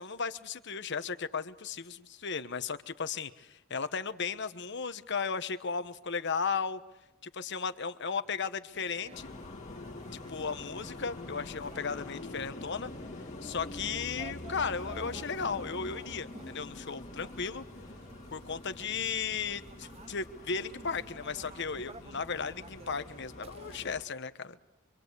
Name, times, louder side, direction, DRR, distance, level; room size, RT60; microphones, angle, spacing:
voice 1, 0.0-6.8 7.2-9.3 10.1-12.9 13.4-17.6 18.3-24.6, left 5 dB, 55° left, 11 dB, 1.3 m, -35 dB
sound 1, 8.7-23.9, right 3 dB, 30° right, 0.9 m, -54 dB
sound 2, 9.1-24.0, left 2 dB, 35° left, 2.4 m, -45 dB
26.5 x 25.0 x 8.3 m, 0.93 s
head